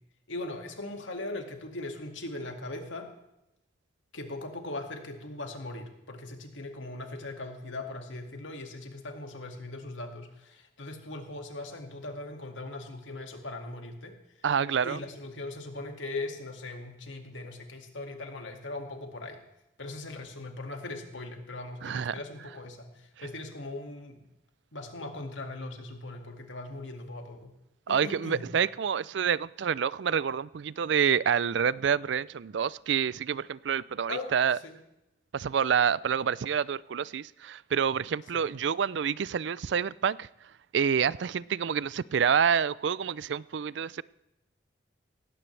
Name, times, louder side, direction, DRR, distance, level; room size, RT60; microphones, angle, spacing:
voice 1, 0.3-3.1 4.1-14.2 14.8-19.4 19.8-24.2 24.7-27.5 27.9-28.4 34.1-34.7 38.3-38.5, left 2 dB, 90° left, 2.2 m, -39 dB
voice 2, 14.4-15.0 21.8-22.1 27.9-34.6 35.3-40.3 40.7-44.0, right 7 dB, 75° right, 0.4 m, -28 dB
18.0 x 16.0 x 3.3 m
head